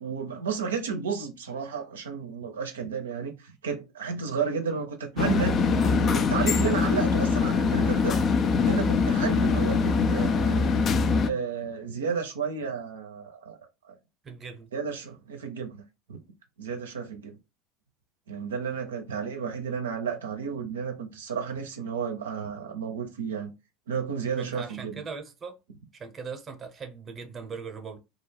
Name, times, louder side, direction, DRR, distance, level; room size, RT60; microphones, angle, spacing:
voice 1, 0.0-8.2 8.6-10.7 11.3-13.6 13.9-14.0 14.7-15.8 16.1-16.2 16.6-17.3 18.3-23.5 23.9-25.0, right 6 dB, 90° right, 0.4 m, -32 dB
sound 1, 5.2-11.3, left 5 dB, 40° left, 0.3 m, -23 dB
voice 2, 14.2-14.7 24.4-25.6 25.9-28.0, right 5 dB, 30° right, 0.7 m, -39 dB
2.3 x 2.1 x 3.2 m
hypercardioid pair, 85°, 0 cm